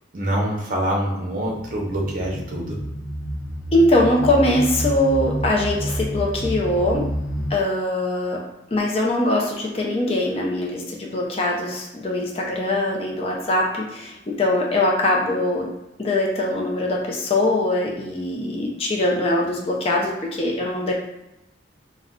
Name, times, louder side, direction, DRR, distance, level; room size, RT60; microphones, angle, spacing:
voice 1, 0.1-2.8, right 1 dB, 45° right, -1 dB, 0.6 m, -25 dB
sound 1, 1.5-7.5, equal, 80° left, 0.5 m, -29 dB
voice 2, 3.7-7.1 7.5-8.4 8.7-15.7 16.0-20.9, left 1 dB, 30° left, -2 dB, 0.5 m, -22 dB
2.4 x 2.1 x 3.6 m, 0.89 s
head